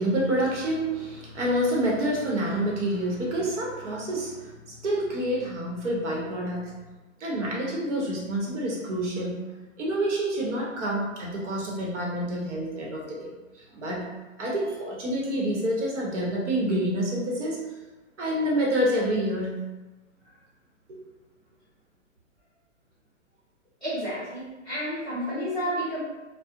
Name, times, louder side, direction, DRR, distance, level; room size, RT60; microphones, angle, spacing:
voice 1, 0.0-6.7 7.2-9.4 9.8-13.3 13.6-14.1 14.4-17.6 18.2-19.6 20.9-21.0, right 1 dB, 65° right, -2 dB, 0.8 m, -28 dB
voice 2, 23.8-26.0, equal, ahead, -19 dB, 0.7 m, -31 dB
2.3 x 2.0 x 2.8 m, 1.1 s
hypercardioid pair, 165°, 38 cm